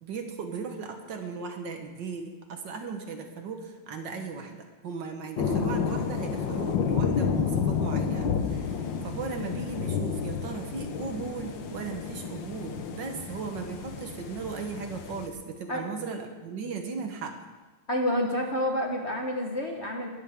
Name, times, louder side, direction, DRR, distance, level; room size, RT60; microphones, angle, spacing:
voice 1, 0.0-17.3, right 5 dB, 60° right, 5 dB, 1.7 m, -37 dB
sound 1, 5.4-15.3, left 6 dB, 65° left, 1.6 m, -30 dB
voice 2, 17.9-20.1, left 1 dB, 35° left, 1 dB, 1.4 m, -28 dB
19.0 x 13.0 x 3.6 m, 1.2 s
omnidirectional pair, 2.4 m